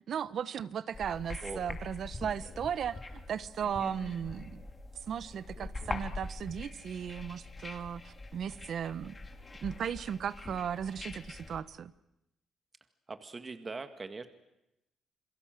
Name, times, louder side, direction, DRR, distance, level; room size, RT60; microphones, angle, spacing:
voice 1, 0.1-4.6 5.1-9.2 9.6-11.9, right 8 dB, 60° right, 16 dB, 1.0 m, -36 dB
sound 1, 0.9-11.6, left 3 dB, 25° left, 2.9 m, -43 dB
voice 2, 5.5-5.9 13.1-14.3, right 3 dB, 30° right, 8 dB, 1.9 m, -42 dB
28.5 x 22.0 x 7.7 m, 0.87 s
cardioid pair, 90°, 0 cm